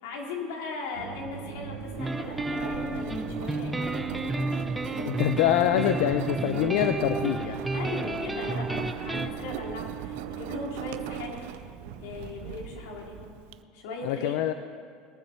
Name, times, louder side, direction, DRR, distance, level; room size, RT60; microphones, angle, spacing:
voice 1, 0.0-4.2 7.7-11.6 12.0-13.3 13.7-14.3, left 3 dB, 90° left, -1 dB, 3.0 m, -38 dB
sound 1, 0.9-13.3, right 6 dB, 90° right, 1.3 m, -43 dB
Engine, 1.8-13.5, right 14 dB, 75° right, 0.5 m, -39 dB
sound 2, 2.0-9.3, right 2 dB, 5° right, 0.6 m, -32 dB
voice 2, 5.0-7.6 14.0-14.5, left 11 dB, 65° left, 9 dB, 0.5 m, -25 dB
21.5 x 7.4 x 5.6 m, 2.2 s
cardioid pair, 165°, 0 cm